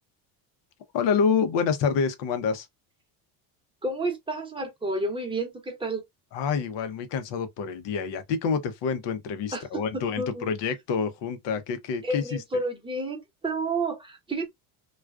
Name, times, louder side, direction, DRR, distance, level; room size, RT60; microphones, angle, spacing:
voice 1, 0.9-2.7 6.3-12.4, left 6 dB, 60° left, 0.8 m, -27 dB
voice 2, 3.8-6.0 9.5-9.8 10.2-10.5 12.0-14.5, right 2 dB, 10° right, 0.9 m, -30 dB
2.4 x 2.2 x 2.3 m
supercardioid pair, 95°, 49 cm